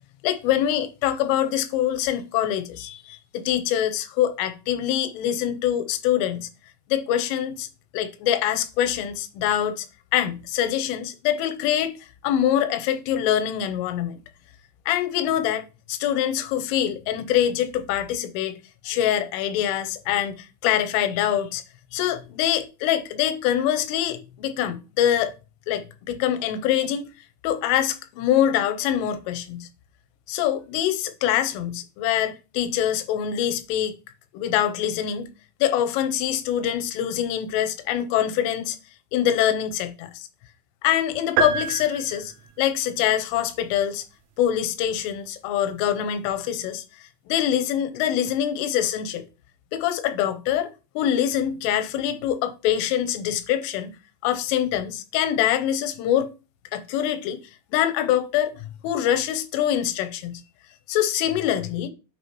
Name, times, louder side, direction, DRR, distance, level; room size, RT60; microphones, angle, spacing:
voice 1, 0.2-6.5 6.9-7.7 7.9-9.9 10.1-11.9 12.2-14.2 14.9-18.6 18.8-21.6 21.9-25.3 25.7-27.1 27.4-29.7 30.3-34.0 34.3-35.3 35.6-38.8 39.1-40.3 40.8-42.3 42.6-44.0 44.4-46.8 47.3-49.2 49.7-50.7 51.0-53.9 54.2-56.3 56.7-57.4 57.7-60.4 60.9-61.9, left 10 dB, 90° left, 3.3 m, -24 dB
sound 1, 41.4-42.7, right 6 dB, 80° right, 2.6 m, -27 dB
9.5 x 4.8 x 3.0 m
omnidirectional pair, 5.5 m